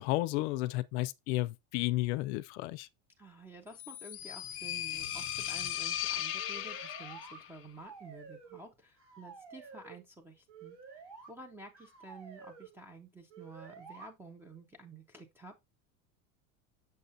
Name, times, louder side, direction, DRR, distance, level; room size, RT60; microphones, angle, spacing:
voice 1, 0.0-2.9, left 18 dB, 55° left, 0.5 m, -32 dB
voice 2, 3.2-11.0 11.3-15.6, right 2 dB, 5° right, 0.4 m, -51 dB
sound 1, 3.7-7.5, left 11 dB, 30° left, 0.9 m, -37 dB
sound 2, 6.3-7.4 7.7-8.7 9.0-10.0 10.5-11.3 11.7-12.7 13.3-14.1, right 5 dB, 80° right, 4.8 m, -51 dB
6.9 x 6.5 x 2.5 m
cardioid pair, 165°, 41 cm